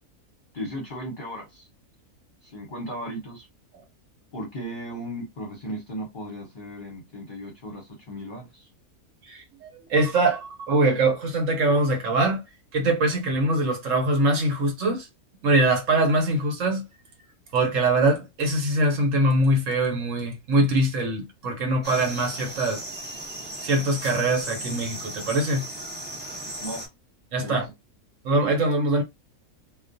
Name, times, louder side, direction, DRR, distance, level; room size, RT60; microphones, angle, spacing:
voice 1, 0.5-1.7 2.4-3.5 4.3-8.7 26.6-26.8 27.4-27.6, equal, 40° left, 0.8 m, -36 dB
voice 2, 9.3-12.4 12.7-15.1 15.4-16.8 17.5-22.8 23.6-25.6 27.3-27.6 28.2-29.0, right 2 dB, 60° right, 1.1 m, -23 dB
sound 1, 21.8-26.9, right 1 dB, 10° right, 0.6 m, -36 dB
2.4 x 2.3 x 2.6 m
omnidirectional pair, 1.6 m